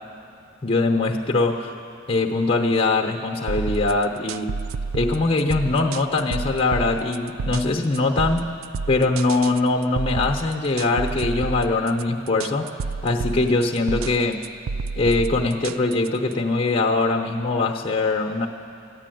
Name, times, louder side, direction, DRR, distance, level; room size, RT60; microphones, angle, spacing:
voice 1, 0.6-1.7 2.1-4.6 4.9-8.6 8.9-12.7 13.0-14.4 15.0-18.5, left 3 dB, 30° left, 2 dB, 0.8 m, -22 dB
sound 1, 3.5-16.3, right 4 dB, 85° right, 0.4 m, -30 dB
13.5 x 9.8 x 9.1 m, 2.6 s
head